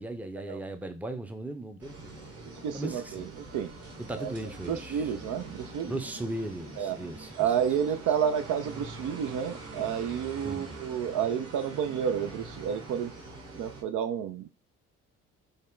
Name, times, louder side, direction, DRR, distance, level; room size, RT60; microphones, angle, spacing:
voice 1, 0.0-2.3 2.7-3.3 4.0-5.1 5.9-7.7 10.4-10.7, right 1 dB, 5° right, 0.6 m, -37 dB
sound 1, 1.8-13.8, right 2 dB, 45° right, 1.3 m, -44 dB
voice 2, 2.6-3.7 4.2-4.3 4.7-5.9 6.8-7.0 7.4-13.1 13.5-14.5, right 8 dB, 60° right, 0.5 m, -30 dB
3.4 x 2.1 x 3.7 m
hypercardioid pair, 55°, 34 cm